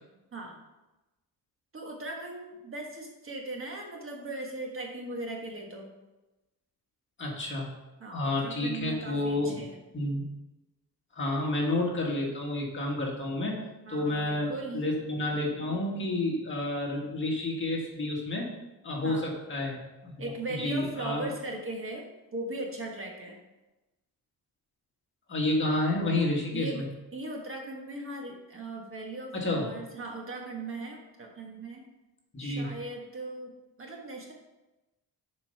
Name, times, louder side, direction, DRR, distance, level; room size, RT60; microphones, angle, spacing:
voice 1, 1.7-5.9 8.0-9.8 13.8-14.8 19.0-19.2 20.2-22.1 22.3-23.4 26.5-26.8 27.1-31.8 32.4-33.5 33.8-34.3, right 2 dB, 35° right, 1 dB, 1.4 m, -38 dB
voice 2, 7.2-7.7 8.1-9.6 9.9-10.3 11.2-13.6 13.9-18.5 18.8-19.8 20.0-20.1 20.6-21.3 25.3-26.8 29.3-29.7 32.3-32.7, left 2 dB, 30° left, -2 dB, 1.8 m, -30 dB
7.4 x 5.4 x 5.7 m, 1.0 s
cardioid pair, 150°, 37 cm